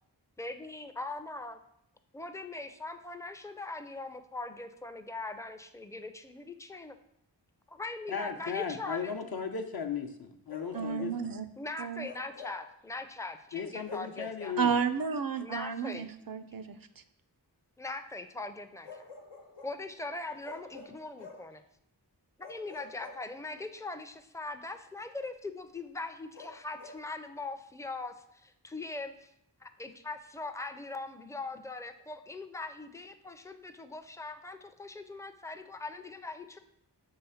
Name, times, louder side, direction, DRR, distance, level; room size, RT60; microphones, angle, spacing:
voice 1, 0.4-1.6 2.1-7.0 7.7-9.1 11.6-14.6 15.4-16.1 17.8-19.1 19.6-21.6 22.4-29.3 29.6-36.6, left 3 dB, 10° left, 8 dB, 0.4 m, -41 dB
voice 2, 8.1-11.1 13.5-14.7, left 6 dB, 60° left, 5 dB, 0.7 m, -36 dB
Bark, 10.5-11.2 12.0-12.7 13.8-14.2 15.9-16.1 18.8-19.8 20.4-21.5 22.4-23.7 26.3-27.1, left 4 dB, 90° left, 1.0 m, -49 dB
voice 3, 10.7-11.5 11.8-12.1 14.6-17.0, right 6 dB, 55° right, 11 dB, 0.5 m, -32 dB
5.7 x 3.3 x 5.6 m, 0.76 s
wide cardioid pair, 40°, 42 cm